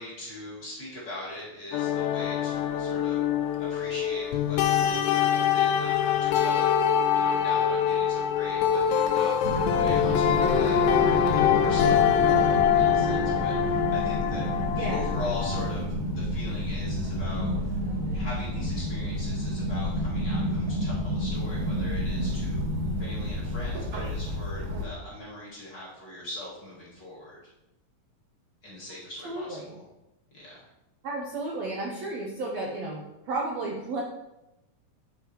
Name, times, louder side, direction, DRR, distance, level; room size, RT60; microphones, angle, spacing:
voice 1, 0.0-3.2 3.5-6.7 7.1-17.6 18.1-22.6 23.0-27.4 28.6-29.8 30.3-30.7, left 1 dB, 35° left, -8 dB, 2.5 m, -41 dB
sound 1, 1.7-15.7, left 8 dB, 80° left, 2.3 m, -24 dB
sound 2, 9.4-24.8, equal, 55° right, 1.5 m, -30 dB
voice 2, 14.7-15.1 29.2-29.7 31.0-34.0, right 2 dB, 70° right, -1 dB, 1.7 m, -33 dB
8.8 x 7.4 x 3.1 m, 0.93 s
omnidirectional pair, 4.0 m